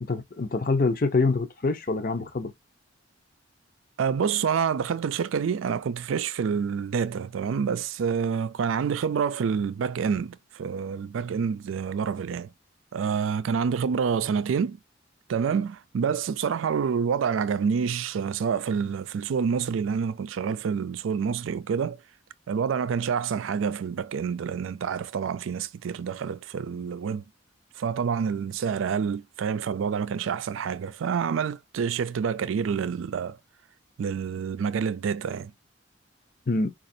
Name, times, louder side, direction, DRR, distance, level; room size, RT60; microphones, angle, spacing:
voice 1, 0.1-2.5 36.5-36.7, left 3 dB, 45° left, 0.6 m, -25 dB
voice 2, 4.0-12.5 12.9-14.8 15.3-22.0 22.5-27.2 27.8-33.4 34.0-35.5, right 6 dB, 85° right, 0.4 m, -27 dB
5.0 x 2.4 x 2.6 m
head